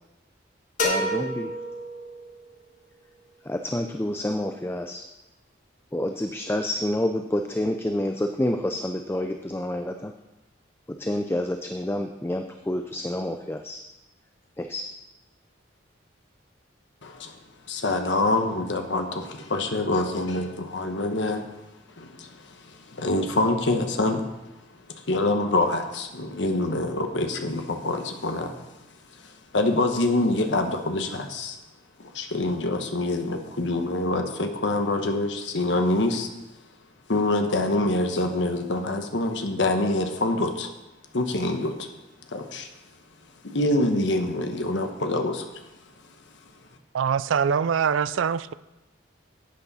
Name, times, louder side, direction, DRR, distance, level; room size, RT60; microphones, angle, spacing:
sound 1, 0.8-2.5, equal, 45° left, 1.6 m, -29 dB
voice 1, 0.8-1.5 3.4-5.0 5.9-10.1 11.0-13.8 14.6-14.9, left 1 dB, 10° left, 6 dB, 0.4 m, -28 dB
voice 2, 17.0-17.4 17.7-21.5 22.0-24.2 25.0-28.5 29.2-31.6 32.0-36.3 37.1-40.7 41.1-41.9 42.3-42.7 43.4-45.5, left 2 dB, 70° left, 5 dB, 1.0 m, -25 dB
voice 3, 46.9-48.5, right 7 dB, 85° right, 16 dB, 0.4 m, -23 dB
11.5 x 8.4 x 4.1 m, 1.0 s
head